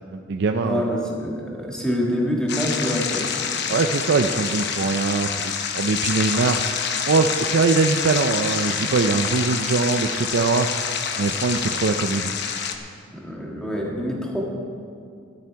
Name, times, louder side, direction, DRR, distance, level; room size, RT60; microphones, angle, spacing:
voice 1, 0.0-0.8 3.7-10.9 11.2-12.3, right 4 dB, 60° right, 5 dB, 0.4 m, -22 dB
voice 2, 0.6-3.2 13.1-14.4, equal, 5° left, -2 dB, 1.7 m, -26 dB
sound 1, 2.5-12.8, left 7 dB, 55° left, 0.8 m, -27 dB
13.0 x 10.0 x 4.6 m, 2.3 s
head